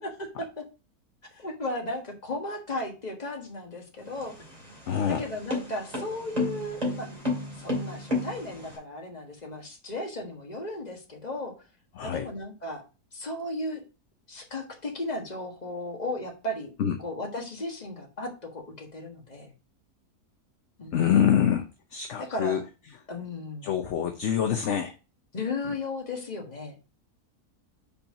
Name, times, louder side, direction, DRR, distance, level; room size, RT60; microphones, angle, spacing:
voice 1, 0.0-0.6 1.3-4.3 5.1-7.1 7.5-11.5 12.0-12.8 13.1-13.8 14.3-16.7 17.0-19.5 20.8-21.1 22.2-22.6 23.1-23.7 25.3-26.7, left 2 dB, 30° left, 2 dB, 1.5 m, -35 dB
sound 1, 4.0-8.8, left 2 dB, 25° right, 2.6 m, -32 dB
voice 2, 4.9-5.2 12.0-12.3 16.8-16.9 20.9-21.6 21.9-22.6 23.6-24.9, left 9 dB, 60° left, 6 dB, 0.9 m, -25 dB
5.4 x 4.4 x 5.2 m, 0.32 s
omnidirectional pair, 1.6 m